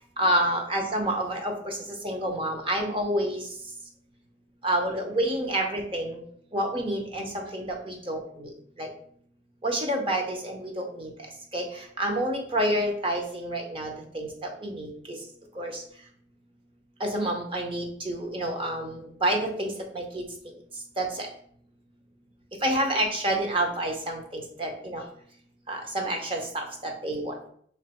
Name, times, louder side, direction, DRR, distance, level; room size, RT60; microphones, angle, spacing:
voice 1, 0.2-3.5 4.6-6.2 6.5-8.5 8.8-8.9 9.6-11.1 11.5-15.2 15.5-15.8 17.0-20.2 21.0-21.3 22.6-25.0 25.7-27.3, right 1 dB, 30° right, 2 dB, 0.8 m, -29 dB
3.2 x 3.1 x 4.2 m, 0.62 s
head